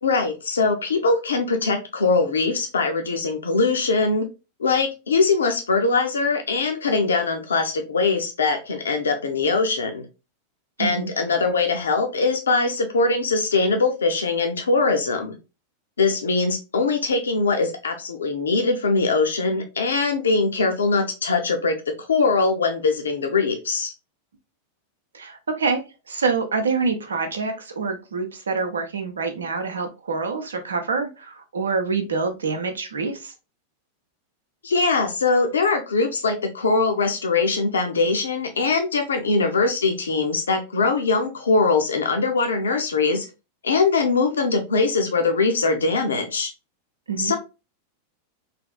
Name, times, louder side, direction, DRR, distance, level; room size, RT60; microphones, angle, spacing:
voice 1, 0.0-4.2 4.6-10.0 10.8-15.3 16.0-23.9 34.6-43.3 43.6-46.5 47.2-47.4, left 4 dB, 70° left, 5 dB, 0.5 m, -22 dB
voice 2, 10.8-11.1 25.1-33.3 47.1-47.3, right 4 dB, 70° right, 7 dB, 0.6 m, -26 dB
3.3 x 2.4 x 2.2 m, 0.28 s
figure-of-eight pair, 90°, 0 cm